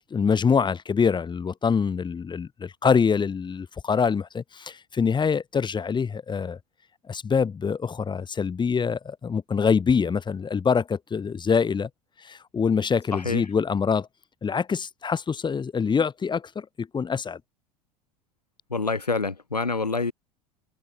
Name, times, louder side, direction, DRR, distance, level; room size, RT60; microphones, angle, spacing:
voice 1, 0.0-6.6 7.1-11.9 12.2-14.1 14.4-17.4, left 6 dB, 25° left, 3.2 m, -25 dB
voice 2, 13.1-13.4 18.7-20.1, left 3 dB, 90° left, 3.9 m, -26 dB
figure-of-eight pair, 75°, 20 cm